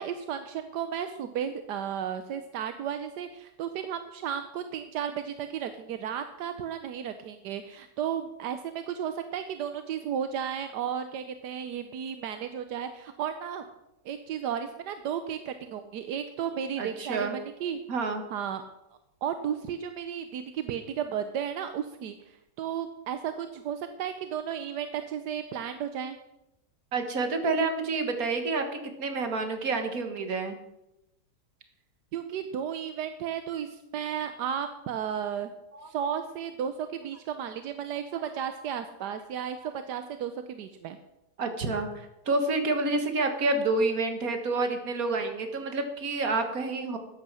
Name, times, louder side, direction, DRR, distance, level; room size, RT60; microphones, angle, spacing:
voice 1, 0.0-13.6 14.0-17.8 18.3-18.6 19.2-26.2 32.1-35.5 35.8-41.0, right 8 dB, 80° right, 9 dB, 1.3 m, -34 dB
voice 2, 16.8-17.4 17.9-18.2 26.9-28.6 29.0-30.6 35.7-35.9 41.4-47.0, right 3 dB, 60° right, 6 dB, 2.0 m, -28 dB
13.0 x 9.4 x 6.2 m, 0.91 s
omnidirectional pair, 1.8 m